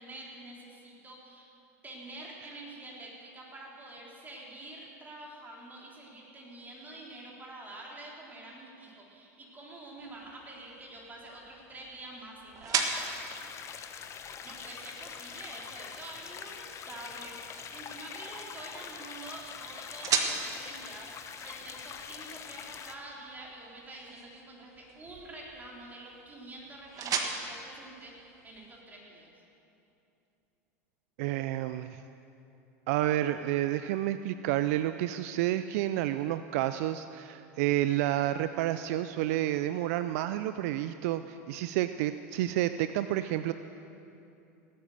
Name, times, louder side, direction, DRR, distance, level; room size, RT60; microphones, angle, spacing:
voice 1, 0.0-1.5 1.8-13.2 14.4-17.4 17.7-29.3, right 2 dB, 20° right, -3 dB, 4.0 m, -47 dB
sound 1, 10.0-28.8, right 6 dB, 40° right, 1.5 m, -39 dB
sound 2, 12.8-23.0, left 7 dB, 35° left, 1.0 m, -44 dB
voice 2, 31.2-32.0 32.9-43.5, right 13 dB, 65° right, 11 dB, 0.4 m, -30 dB
18.5 x 8.8 x 6.6 m, 2.8 s
hypercardioid pair, 100°, 9 cm